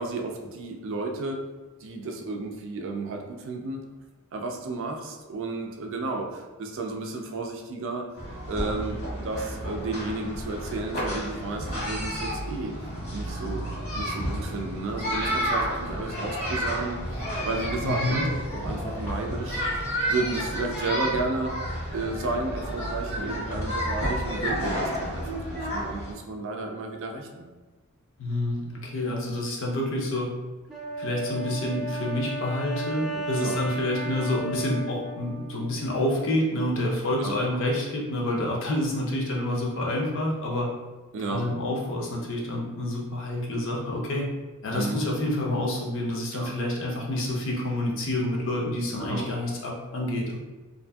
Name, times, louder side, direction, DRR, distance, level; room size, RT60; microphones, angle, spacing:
voice 1, 0.0-1.4 1.8-3.8 4.3-8.1 8.5-12.7 13.1-13.6 14.0-17.0 17.4-18.2 18.6-19.6 20.1-21.5 21.9-27.5 33.3-33.6 37.2-37.3 41.1-41.5 44.7-45.0 46.3-46.5 49.0-49.2, right 3 dB, 60° right, 3 dB, 0.4 m, -32 dB
sound 1, 8.2-26.1, equal, 85° left, 1.3 m, -31 dB
voice 2, 17.8-18.2 28.2-30.3 31.0-40.7 41.3-44.3 44.6-50.4, left 1 dB, 60° left, -2 dB, 0.6 m, -28 dB
Wind instrument woodwind instrument, 30.7-36.1, right 1 dB, ahead, 0.5 m, -35 dB
2.6 x 2.5 x 2.2 m, 1.2 s
head